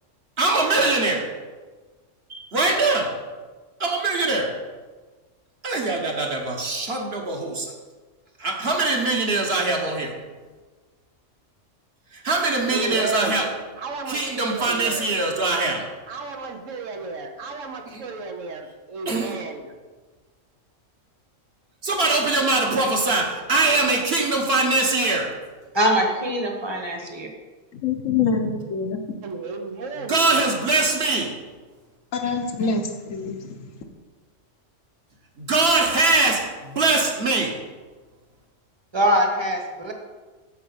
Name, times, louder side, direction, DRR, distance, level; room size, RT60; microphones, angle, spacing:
voice 1, 0.4-1.3 2.3-3.1 3.8-4.5 5.6-7.7 8.4-10.1 12.1-13.5 14.1-15.8 17.9-18.0 19.0-19.4 21.8-25.3 30.0-31.3 35.4-37.5, right 3 dB, 55° right, 1 dB, 1.5 m, -22 dB
voice 2, 12.6-13.4 13.8-15.1 16.1-19.7 29.2-30.3, right 3 dB, 80° right, 4 dB, 1.3 m, -32 dB
voice 3, 25.7-27.3 38.9-39.9, equal, 20° right, 3 dB, 1.1 m, -22 dB
voice 4, 27.7-29.2 32.1-33.8, left 5 dB, 80° left, 5 dB, 1.3 m, -26 dB
8.4 x 5.0 x 7.1 m, 1.3 s
omnidirectional pair, 1.3 m